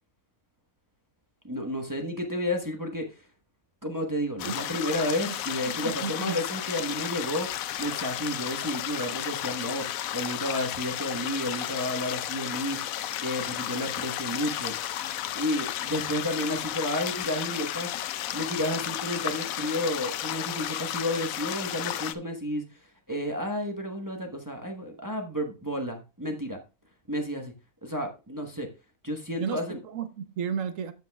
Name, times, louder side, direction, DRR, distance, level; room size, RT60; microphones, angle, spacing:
voice 1, 1.4-3.1 3.8-7.5 7.8-12.8 13.2-14.7 15.3-17.9 18.3-22.6 23.1-26.6 27.1-27.5 27.8-28.7 29.0-29.8, left 1 dB, 15° right, 1.0 m, -31 dB
sound 1, 4.4-22.1, left 12 dB, 85° left, 1.0 m, -33 dB
voice 2, 5.2-6.4 29.4-30.9, right 7 dB, 70° right, 1.2 m, -34 dB
13.5 x 6.0 x 2.3 m
omnidirectional pair, 1.4 m